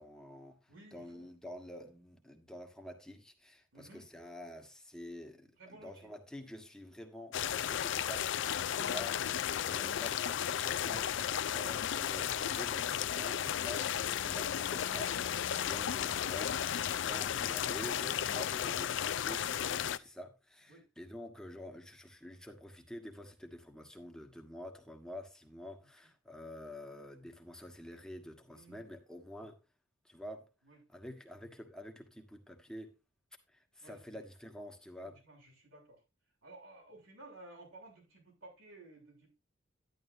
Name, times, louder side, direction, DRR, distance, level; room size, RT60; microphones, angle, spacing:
voice 1, 0.0-29.6 30.0-30.5 30.9-32.9 33.5-35.2, left 1 dB, 5° left, 1.4 m, -48 dB
voice 2, 0.7-1.3 3.7-4.1 5.6-6.1 11.4-11.6 18.1-18.2 20.7-20.9 25.8-25.9 28.5-28.8 29.4-29.5 30.6-30.8 33.8-34.2 35.0-36.0 36.4-39.3, right 2 dB, 85° right, 7.2 m, -55 dB
sound 1, 7.3-20.0, left 9 dB, 65° left, 0.4 m, -34 dB
11.5 x 10.5 x 2.7 m
head